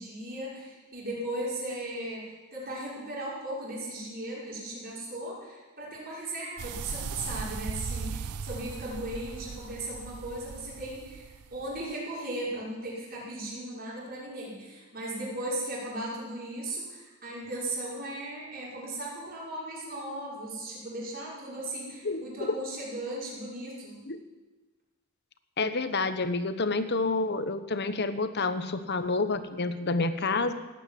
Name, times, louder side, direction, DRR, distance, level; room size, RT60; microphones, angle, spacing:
voice 1, 0.0-11.2 11.5-24.0, right 1 dB, 40° right, -5 dB, 6.1 m, -37 dB
sound 1, 6.6-11.9, right 5 dB, 90° right, 0.6 m, -38 dB
voice 2, 22.0-22.5 24.1-24.2 25.6-30.5, left 3 dB, 50° left, 11 dB, 1.1 m, -29 dB
17.0 x 9.2 x 9.2 m, 1.2 s
head